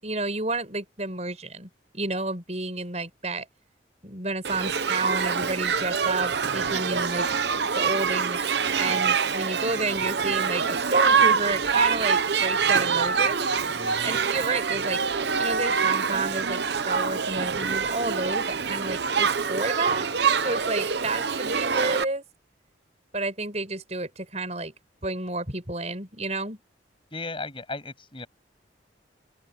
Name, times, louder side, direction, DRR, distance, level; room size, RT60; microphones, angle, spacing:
voice 1, 0.0-1.7 1.9-3.4 4.0-7.3 7.7-13.5 14.0-15.0 15.4-20.0 20.4-22.2 23.1-24.7 25.0-26.6, right 3 dB, 35° right, 8.0 m, -30 dB
Shout / Human group actions, 4.4-22.0, right 6 dB, 65° right, 0.8 m, -25 dB
voice 2, 13.8-14.2 27.1-28.3, left 3 dB, 30° left, 7.5 m, -36 dB
open air
head